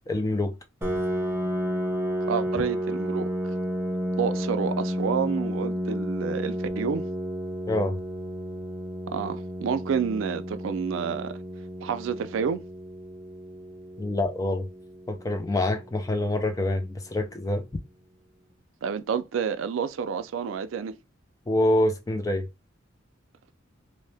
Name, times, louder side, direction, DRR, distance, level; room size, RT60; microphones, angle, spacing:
voice 1, 0.1-0.5 7.7-8.0 14.0-14.7 15.1-17.6 21.5-22.5, left 1 dB, 15° left, 0.3 m, -26 dB
Piano, 0.8-16.2, equal, 15° right, 0.7 m, -32 dB
voice 2, 2.3-3.3 4.2-7.1 9.1-11.4 11.8-12.6 18.8-20.9, right 6 dB, 75° right, 0.3 m, -29 dB
2.7 x 2.0 x 3.2 m
head